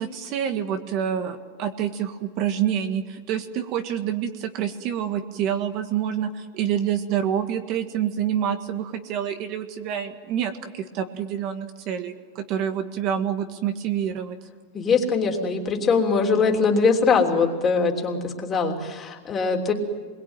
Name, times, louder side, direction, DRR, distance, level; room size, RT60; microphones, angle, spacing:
voice 1, 0.0-14.4, right 9 dB, 40° right, 7 dB, 1.7 m, -27 dB
voice 2, 14.7-19.7, left 4 dB, 20° left, 2 dB, 3.3 m, -22 dB
26.5 x 22.0 x 9.1 m, 1.5 s
supercardioid pair, 150°, 0 cm